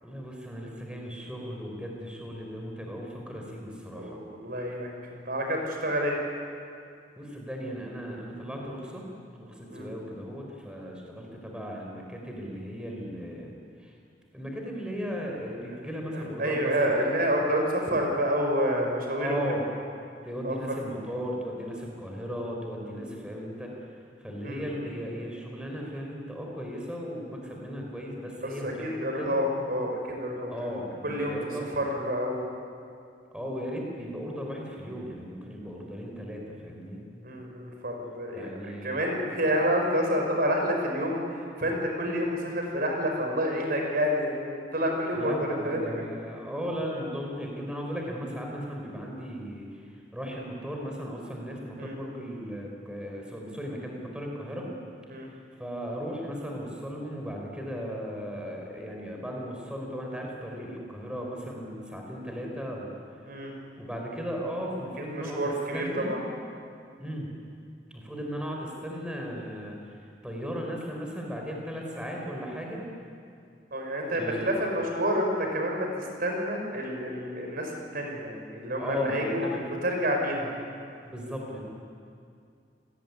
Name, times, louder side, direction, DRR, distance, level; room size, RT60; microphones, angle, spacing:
voice 1, 0.0-4.2 7.2-9.1 9.4-13.5 13.8-13.9 14.3-17.1 19.2-19.6 20.2-23.9 24.2-29.4 30.5-31.6 33.3-37.0 38.3-39.1 45.1-54.7 55.6-62.9 63.8-65.4 65.7-66.2 67.0-67.3 67.9-69.8 70.2-72.8 74.1-74.5 78.8-79.6 81.0-81.6, equal, 5° right, 0 dB, 4.5 m, -36 dB
voice 2, 4.0-6.2 9.7-9.9 16.1-19.4 20.4-20.8 22.9-23.1 24.4-24.9 28.4-30.8 31.0-31.4 31.7-32.4 37.2-38.5 38.8-41.2 41.6-46.1 51.8-51.9 55.1-55.3 63.3-63.5 65.0-66.2 73.7-79.4 79.8-80.5, equal, 55° right, 1 dB, 5.7 m, -29 dB
28.5 x 20.0 x 9.7 m, 2.3 s
head